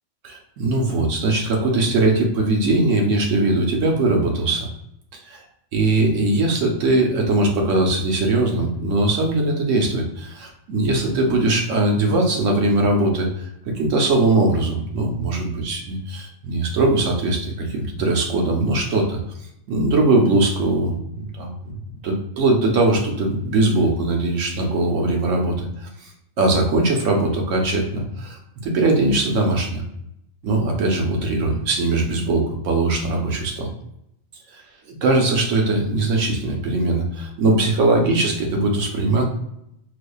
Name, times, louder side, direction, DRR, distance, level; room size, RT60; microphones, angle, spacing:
voice 1, 0.2-4.7 5.1-5.4 5.7-19.2 19.7-21.7 22.0-26.1 26.4-29.8 30.4-33.7 34.5-34.6 34.9-39.3, right 2 dB, 85° right, 0 dB, 1.2 m, -20 dB
4.6 x 2.4 x 2.3 m, 0.77 s
omnidirectional pair, 1.3 m